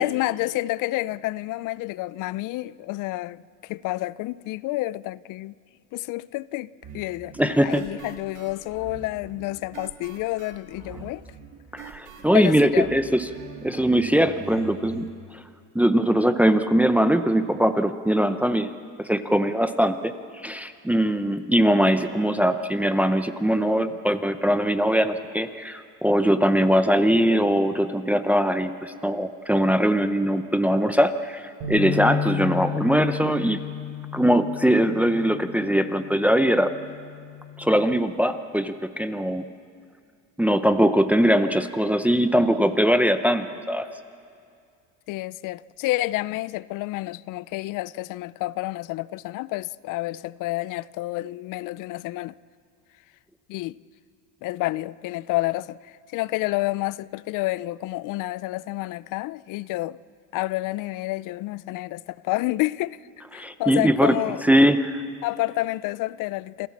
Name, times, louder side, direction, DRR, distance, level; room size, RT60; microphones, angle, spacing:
voice 1, 0.0-5.6 5.9-11.2 12.3-12.9 17.6-17.7 23.9-24.0 42.3-42.4 45.1-52.3 53.5-53.8 54.4-60.0 60.3-63.0 63.3-64.4 65.2-66.7, left 18 dB, 65° left, 0.6 m, -29 dB
sound 1, 6.8-15.1, right 6 dB, 60° right, 3.0 m, -44 dB
voice 2, 7.4-7.8 11.7-13.2 13.6-15.1 15.7-18.7 19.0-33.6 34.1-36.7 37.6-39.4 40.4-43.9 63.3-64.1 64.4-65.0, equal, 5° right, 0.8 m, -21 dB
sound 2, 31.6-37.9, left 8 dB, 75° right, 5.9 m, -33 dB
27.5 x 15.5 x 7.4 m
supercardioid pair, 100°, 35 cm